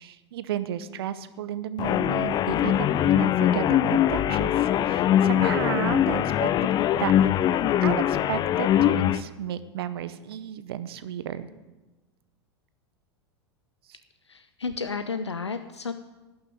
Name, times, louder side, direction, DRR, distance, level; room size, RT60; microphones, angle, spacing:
voice 1, 0.0-6.5 7.0-7.1 7.8-11.5 13.9-14.0, right 10 dB, 60° right, 14 dB, 0.8 m, -33 dB
sound 1, 1.8-9.2, left 11 dB, 30° left, 0.5 m, -22 dB
voice 2, 14.3-15.9, left 4 dB, 85° left, 10 dB, 0.5 m, -32 dB
11.5 x 6.7 x 9.3 m, 1.1 s
figure-of-eight pair, 85°, 14 cm